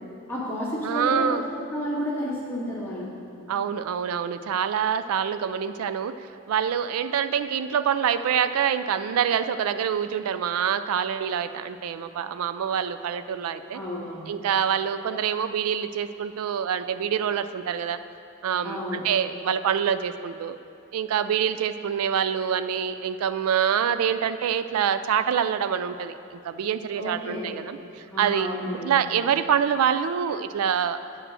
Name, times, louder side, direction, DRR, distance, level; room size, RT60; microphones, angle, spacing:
voice 1, 0.3-3.1 13.7-14.3 18.6-19.1 27.0-27.5 28.1-28.9, equal, 10° left, -9 dB, 1.9 m, -31 dB
voice 2, 0.8-1.5 3.5-6.1 6.5-13.8 14.3-18.0 18.4-20.6 20.9-28.5 28.8-31.0, right 8 dB, 75° right, 11 dB, 0.3 m, -26 dB
8.8 x 5.1 x 6.3 m, 2.6 s
head